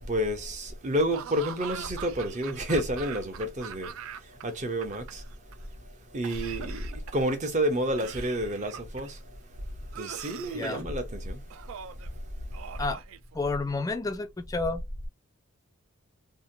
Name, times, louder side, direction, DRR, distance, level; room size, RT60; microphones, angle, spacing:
voice 1, 0.0-5.2 6.1-9.7 9.9-11.6 12.1-12.2 12.8-12.9, equal, 35° right, 0.7 m, -30 dB
Laughter / Cough, 1.1-4.4 4.7-5.5 6.2-7.3 8.0-9.2 9.9-10.9 11.5-12.1 12.5-13.7, right 8 dB, 65° right, 0.3 m, -42 dB
voice 2, 10.5-10.9 12.8-13.0 13.3-14.8, left 3 dB, 15° left, 0.4 m, -30 dB
2.8 x 2.1 x 2.6 m
head